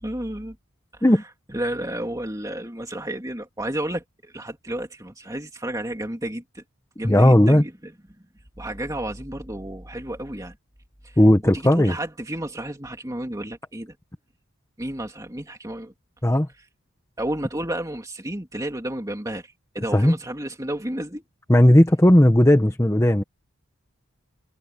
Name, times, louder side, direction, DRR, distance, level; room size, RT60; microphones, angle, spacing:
voice 1, 0.0-0.6 0.9-1.2 1.5-6.6 7.0-7.9 8.6-10.5 11.0-13.9 14.8-15.9 17.2-21.2, right 1 dB, 15° right, 2.8 m, -32 dB
voice 2, 7.0-7.6 11.2-11.9 16.2-16.5 19.9-20.1 21.5-23.2, left 1 dB, 15° left, 1.0 m, -16 dB
head